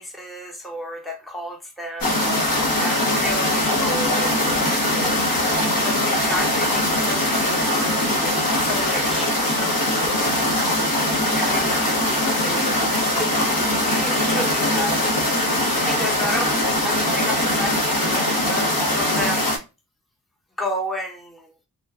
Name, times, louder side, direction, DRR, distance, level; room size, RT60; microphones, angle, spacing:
voice 1, 0.0-10.3 11.3-12.8 13.2-15.0 15.9-16.6 16.8-19.6 20.6-21.5, equal, ahead, 0.8 m, -32 dB
sound 1, 2.0-19.6, left 1 dB, 65° left, 1.0 m, -21 dB
3.0 x 2.2 x 2.3 m
wide cardioid pair, 75°, 37 cm